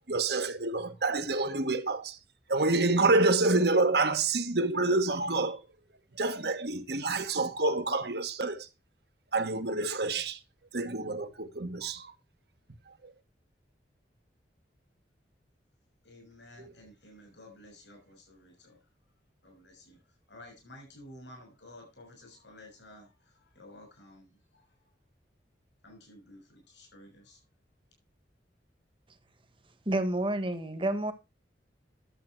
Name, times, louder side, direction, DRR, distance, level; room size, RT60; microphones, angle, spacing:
voice 1, 0.1-2.2 2.5-5.6 6.2-8.7 9.3-10.4 10.7-12.1 13.0-13.1, right 3 dB, 65° right, 1.3 m, -27 dB
voice 2, 16.0-18.8 19.4-24.9 25.8-27.4, left 1 dB, 85° left, 6.2 m, -53 dB
voice 3, 29.8-31.1, right 1 dB, 30° right, 1.3 m, -29 dB
11.5 x 7.4 x 4.5 m
head